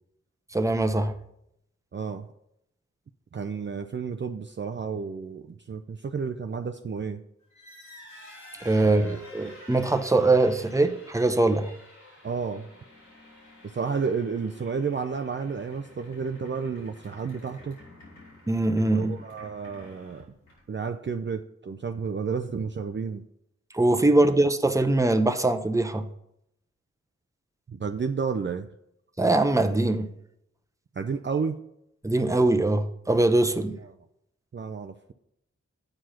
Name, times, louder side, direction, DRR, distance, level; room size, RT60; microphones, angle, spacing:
voice 1, 0.5-1.1 8.6-11.7 18.5-19.1 23.7-26.1 29.2-30.1 32.0-33.8, right 2 dB, 10° right, 0.8 m, -22 dB
voice 2, 1.9-2.3 3.3-7.2 8.8-9.2 12.2-12.7 13.6-17.8 18.9-20.2 20.7-23.2 24.2-24.3 27.7-28.7 31.0-31.6 33.8-33.9 34.5-35.1, right 5 dB, 40° right, 0.5 m, -31 dB
sound 1, 7.4-20.8, left 1 dB, 85° left, 3.7 m, -50 dB
7.7 x 4.7 x 5.8 m
cardioid pair, 45°, 29 cm